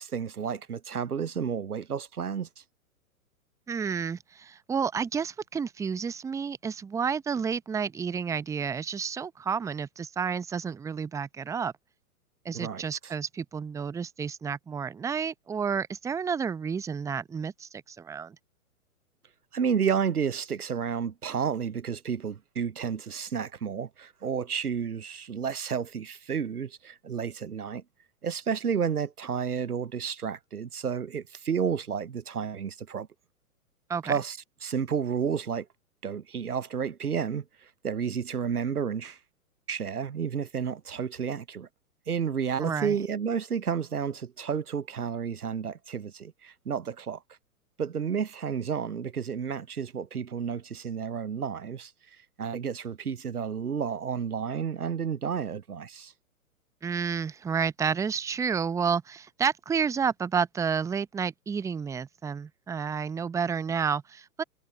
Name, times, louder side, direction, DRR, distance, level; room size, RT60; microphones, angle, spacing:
voice 1, 0.0-2.5 12.5-13.1 19.5-27.8 28.2-33.1 34.0-35.7 36.0-39.2 39.7-41.7 42.1-47.2 47.8-51.9 52.4-56.1, right 7 dB, 90° right, 0.8 m, -31 dB
voice 2, 3.7-11.7 12.4-18.4 33.9-34.1 42.6-43.0 56.8-64.4, right 6 dB, 5° right, 0.8 m, -30 dB
figure-of-eight pair, 115°, 43 cm